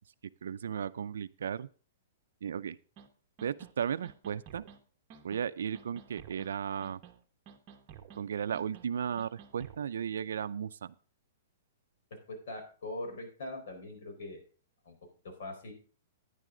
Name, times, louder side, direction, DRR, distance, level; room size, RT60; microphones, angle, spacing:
voice 1, 0.4-1.7 2.4-2.8 3.4-4.6 5.2-7.0 8.1-10.9, right 8 dB, 85° right, 12 dB, 0.4 m, -35 dB
sound 1, 3.0-3.1 3.4-3.7 4.0-4.8 5.1-5.4 5.7-6.5 6.8-7.2 7.5-8.2 8.5-8.9 9.2-9.8, right 8 dB, 30° right, 1.1 m, -52 dB
voice 2, 12.3-14.4 14.8-15.0 15.2-15.7, left 2 dB, 65° left, 3 dB, 4.4 m, -41 dB
10.5 x 9.9 x 3.8 m, 0.39 s
hypercardioid pair, 165°, 0 cm